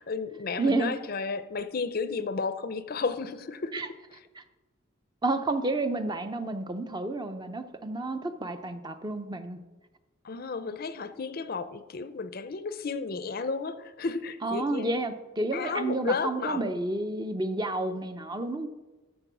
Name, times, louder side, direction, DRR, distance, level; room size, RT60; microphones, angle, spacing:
voice 1, 0.0-3.8 10.2-14.9 15.5-16.8, left 4 dB, 45° left, 0.5 m, -33 dB
voice 2, 0.6-0.9 3.7-3.9 4.4-4.5 5.2-9.6 14.4-18.7, right 2 dB, 20° right, 0.5 m, -30 dB
13.5 x 4.5 x 6.1 m
head